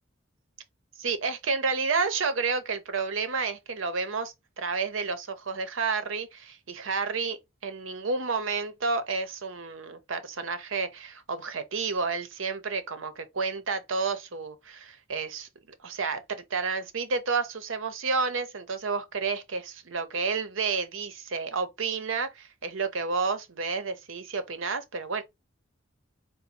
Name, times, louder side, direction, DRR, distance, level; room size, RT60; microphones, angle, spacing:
voice 1, 1.0-15.5 15.8-25.2, right 4 dB, 85° right, 0.8 m, -30 dB
4.0 x 2.2 x 4.2 m
head